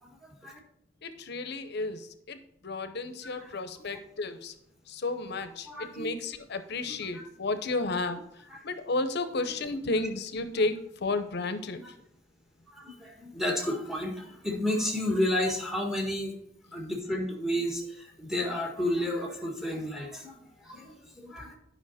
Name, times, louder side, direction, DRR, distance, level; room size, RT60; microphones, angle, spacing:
voice 1, 0.0-0.6 3.4-3.6 3.8-4.0 5.7-6.2 6.9-7.2 8.5-8.6 12.7-16.3 16.7-21.6, left 1 dB, 5° right, 0 dB, 1.5 m, -32 dB
voice 2, 1.0-2.4 2.6-4.5 4.9-8.2 8.6-11.8, left 3 dB, 60° left, 10 dB, 0.8 m, -32 dB
9.7 x 5.7 x 4.2 m, 0.73 s
head